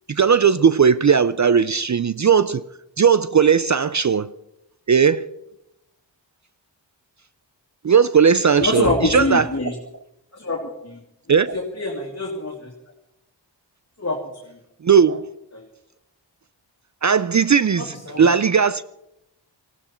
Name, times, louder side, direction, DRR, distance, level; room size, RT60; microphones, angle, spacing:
voice 1, 0.1-2.6 3.0-4.3 4.9-5.3 7.8-9.5 11.3-11.6 14.8-15.3 17.0-18.8, right 6 dB, 40° right, 0.5 m, -17 dB
voice 2, 8.6-9.7 10.3-11.0 11.5-12.7 14.0-14.2 14.5-14.6 15.5-15.7 17.8-18.2, left 2 dB, 35° left, 2.5 m, -25 dB
19.5 x 16.0 x 4.4 m
wide cardioid pair, 95°, 44 cm